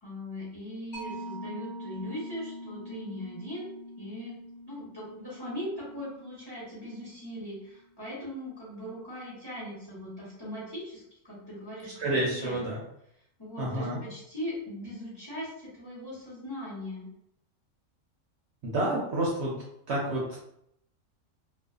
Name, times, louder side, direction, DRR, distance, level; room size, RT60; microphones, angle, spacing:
voice 1, 0.0-3.7 4.0-4.3 4.7-12.6 13.4-17.1, left 1 dB, 20° left, -8 dB, 0.9 m, -40 dB
Mallet percussion, 0.9-8.0, equal, 40° left, 0.7 m, -44 dB
voice 2, 12.0-12.8 13.6-14.0 18.6-19.5 19.9-20.4, right 1 dB, 65° right, -4 dB, 0.8 m, -29 dB
2.5 x 2.4 x 2.3 m, 0.76 s
omnidirectional pair, 1.4 m